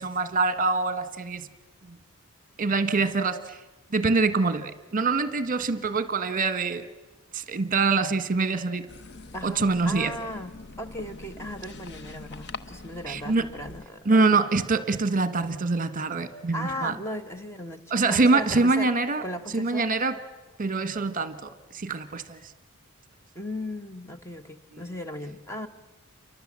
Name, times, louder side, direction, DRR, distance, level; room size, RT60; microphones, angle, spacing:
voice 1, 0.0-1.5 1.9-2.0 2.6-3.6 3.9-6.9 7.3-8.9 9.4-10.1 13.1-13.5 14.0-16.9 17.9-19.2 19.5-20.2 20.6-22.5, right 3 dB, 40° right, 12 dB, 1.3 m, -25 dB
sound 1, 8.9-13.9, left 3 dB, 55° left, 1.0 m, -43 dB
voice 2, 9.3-14.4 16.5-17.8 18.1-18.9 19.2-19.9 23.3-25.7, equal, 15° left, 7 dB, 1.3 m, -37 dB
29.0 x 24.0 x 7.5 m, 1.1 s
head